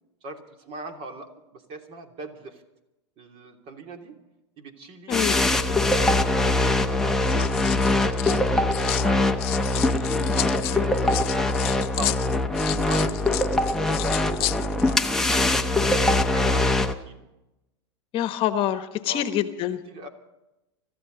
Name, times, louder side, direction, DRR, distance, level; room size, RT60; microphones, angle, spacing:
voice 1, 0.2-2.6 3.2-4.2 4.6-5.2 5.6-9.2 9.7-10.0 10.3-12.3 12.8-13.3 13.8-17.3 19.1-19.3 19.9-20.1, right 3 dB, 40° right, 4 dB, 3.1 m, -40 dB
sound 1, 5.1-16.9, left 2 dB, 5° left, 1.0 m, -23 dB
sound 2, 5.6-6.1 7.0-9.1 9.4-15.3 15.5-15.8, left 20 dB, 60° left, 0.6 m, -33 dB
voice 2, 18.1-19.8, left 11 dB, 40° left, 9 dB, 1.3 m, -25 dB
25.0 x 14.5 x 4.0 m, 0.94 s
supercardioid pair, 130°, 15 cm